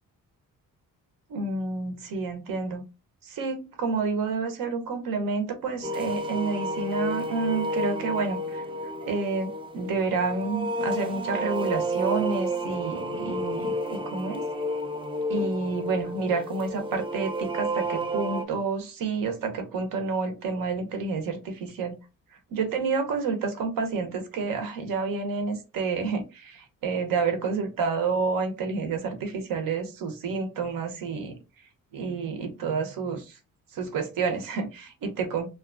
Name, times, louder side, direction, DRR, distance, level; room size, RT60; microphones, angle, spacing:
voice 1, 1.3-2.8 3.2-8.6 9.0-14.5 15.3-22.0 22.3-31.4 31.9-33.4 33.7-35.5, right 4 dB, 75° right, 6 dB, 0.9 m, -29 dB
sound 1, 5.8-18.4, equal, 15° right, 0.4 m, -31 dB
2.8 x 2.4 x 2.4 m, 0.28 s
cardioid pair, 90°, 34 cm